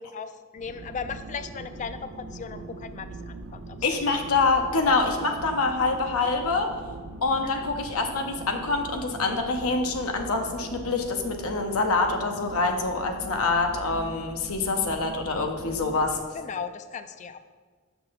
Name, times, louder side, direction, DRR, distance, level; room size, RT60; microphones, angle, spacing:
voice 1, 0.1-3.8 4.4-4.5 7.4-7.6 16.3-17.4, left 6 dB, 35° left, 11 dB, 0.3 m, -37 dB
sound 1, 0.6-16.2, right 2 dB, 65° right, 0.6 m, -41 dB
voice 2, 3.8-6.7 7.2-16.2, left 3 dB, 80° left, 4 dB, 0.7 m, -25 dB
6.5 x 5.7 x 4.0 m, 1.5 s
head